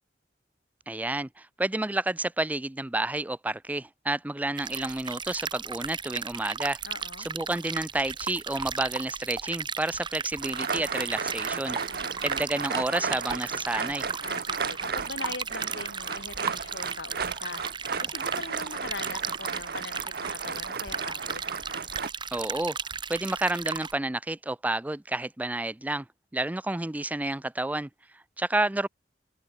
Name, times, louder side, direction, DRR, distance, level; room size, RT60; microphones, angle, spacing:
voice 1, 0.9-6.8 7.2-11.8 12.2-14.1 22.3-22.8 23.1-26.1 26.3-28.9, right 2 dB, 10° right, 0.4 m, -30 dB
sound 1, 4.6-23.9, right 6 dB, 25° right, 1.2 m, -35 dB
voice 2, 6.8-7.3 11.7-12.1 14.2-21.5, left 3 dB, 85° left, 3.1 m, -41 dB
sound 2, 10.4-22.1, right 5 dB, 60° right, 1.2 m, -34 dB
head